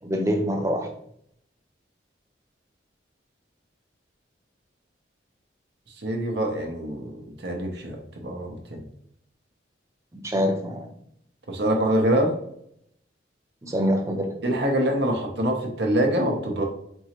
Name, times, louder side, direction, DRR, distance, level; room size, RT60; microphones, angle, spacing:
voice 1, 0.0-0.9 10.2-10.9 13.6-14.3, equal, 15° right, 2 dB, 0.5 m, -25 dB
voice 2, 6.0-8.8 11.5-12.3 14.4-16.6, right 1 dB, 65° right, 1 dB, 0.7 m, -25 dB
4.5 x 2.9 x 2.9 m, 0.70 s
head